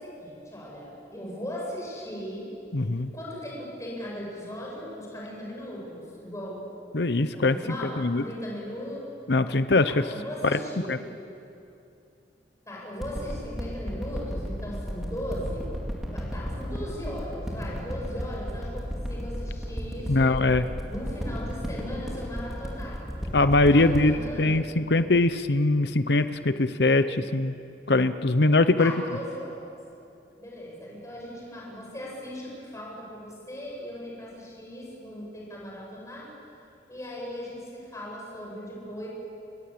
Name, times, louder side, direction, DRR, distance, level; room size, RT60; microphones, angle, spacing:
voice 1, 0.0-2.5 3.1-6.7 7.3-9.0 9.9-11.1 12.7-15.7 16.0-20.4 20.9-23.0 23.6-24.6 28.8-29.7 30.4-36.3 36.9-39.1, equal, 20° left, -3 dB, 7.6 m, -38 dB
voice 2, 2.7-3.1 6.9-7.6 8.0-8.2 9.3-10.0 10.9-11.0 20.1-20.6 23.3-27.5 27.9-28.9, left 2 dB, 70° left, 11 dB, 0.9 m, -22 dB
sound 1, 13.0-25.8 26.4-26.5, equal, ahead, 4.4 m, -34 dB
30.0 x 22.5 x 8.8 m, 2.7 s
head